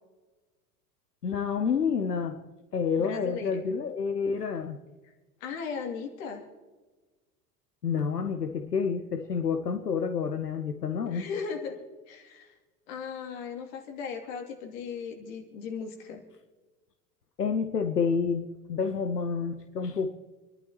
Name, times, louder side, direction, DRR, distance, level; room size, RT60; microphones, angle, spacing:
voice 1, 1.2-2.4 2.7-4.8 7.8-11.3 17.4-20.1, left 6 dB, 85° left, 6 dB, 0.9 m, -29 dB
voice 2, 3.0-3.6 5.4-6.4 11.0-11.8 12.1-12.5 12.9-16.2, left 6 dB, 55° left, 3 dB, 2.8 m, -37 dB
28.5 x 11.5 x 3.0 m, 1.2 s
figure-of-eight pair, 75°, 46 cm